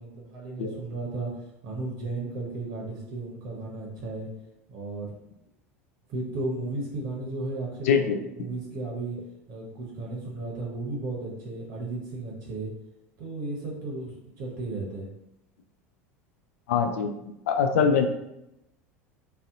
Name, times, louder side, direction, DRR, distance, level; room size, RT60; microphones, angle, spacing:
voice 1, 0.0-1.4 1.6-4.3 4.7-5.1 6.1-9.2 9.5-12.7 13.2-15.1, right 2 dB, 55° right, -2 dB, 0.7 m, -34 dB
voice 2, 7.9-8.2 16.7-17.1 17.5-18.1, left 6 dB, 75° left, 6 dB, 0.4 m, -22 dB
2.7 x 2.0 x 3.6 m, 0.87 s
hypercardioid pair, 80°, 8 cm